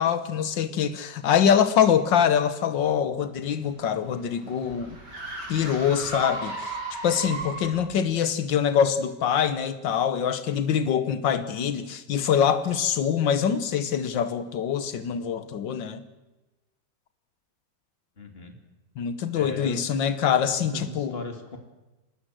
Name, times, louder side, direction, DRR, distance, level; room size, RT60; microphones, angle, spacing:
voice 1, 0.0-5.0 5.5-6.8 7.0-16.0 19.0-21.2, left 8 dB, 90° left, 12 dB, 1.8 m, -24 dB
sound 1, 3.4-7.9, right 2 dB, 65° right, 5.6 m, -36 dB
voice 2, 18.2-18.6 19.3-20.2 20.7-21.6, left 3 dB, 30° left, 5 dB, 3.1 m, -38 dB
29.5 x 13.0 x 7.8 m, 1.1 s
omnidirectional pair, 1.9 m